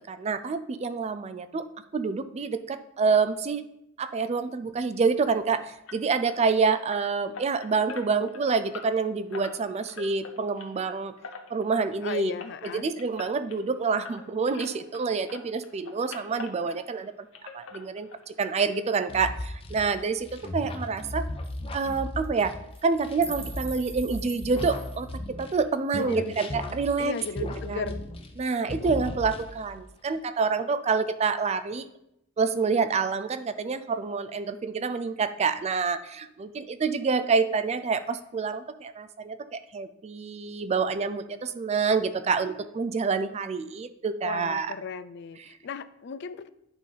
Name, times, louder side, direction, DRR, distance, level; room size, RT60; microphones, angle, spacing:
voice 1, 0.1-1.6 1.9-3.6 4.0-11.1 11.5-12.3 12.6-17.1 17.5-21.2 21.7-22.5 22.8-27.1 27.4-27.9 28.4-31.9 32.4-44.7 45.4-45.5, right 5 dB, 35° right, 12 dB, 0.4 m, -27 dB
sound 1, 5.9-15.0 15.3-17.1 17.3-18.4 18.7-18.8 19.3-19.4 19.7-19.8, left 4 dB, 85° left, 0.9 m, -45 dB
voice 2, 12.0-12.9 25.9-26.3 27.0-28.0 44.2-46.5, left 6 dB, 60° left, 14 dB, 0.4 m, -36 dB
sound 2, 19.1-25.6 25.9-28.4 28.7-29.8, left 1 dB, 30° left, 0.7 m, -36 dB
sound 3, 20.3-20.4 20.7-20.8 21.0-21.2 21.4-21.6 22.2-22.4 22.7-25.1, right 4 dB, 10° right, 0.8 m, -42 dB
9.8 x 3.3 x 5.4 m, 0.82 s
head